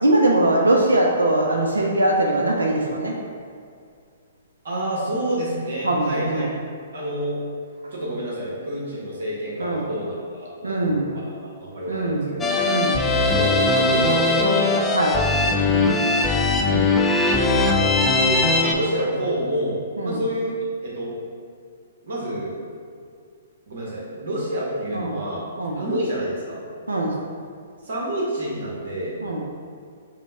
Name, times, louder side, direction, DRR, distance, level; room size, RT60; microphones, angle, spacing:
voice 1, 0.0-3.2 5.8-6.5 7.8-7.9 9.6-9.9 10.6-11.2 11.9-12.3 12.7-13.0 14.9-15.2 16.6-16.9 20.0-20.2 24.9-25.2 25.6-25.9 26.9-27.2 29.2-29.4, right 1 dB, 85° right, -1 dB, 0.4 m, -22 dB
voice 2, 4.6-6.5 6.9-7.4 7.9-12.5 13.3-14.8 15.4-16.4 18.1-20.5 20.8-21.1 22.0-22.6 23.7-25.4 25.8-26.6 27.8-29.2, right 1 dB, 65° right, -5 dB, 0.9 m, -28 dB
sound 1, 12.4-18.7, left 3 dB, 10° left, 0.3 m, -20 dB
5.0 x 2.1 x 3.3 m, 2.3 s
hypercardioid pair, 125°, 0 cm